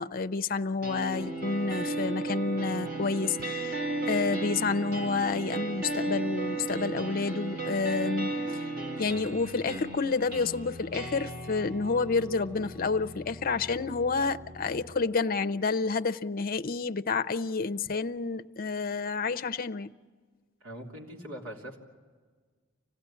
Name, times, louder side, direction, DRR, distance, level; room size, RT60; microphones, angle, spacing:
voice 1, 0.0-8.6 9.0-19.9, left 4 dB, 45° left, 0.6 m, -29 dB
sound 1, 0.8-14.8, right 2 dB, 45° right, 4.0 m, -35 dB
voice 2, 20.6-21.8, equal, 75° right, 3.4 m, -42 dB
26.0 x 16.5 x 10.0 m
head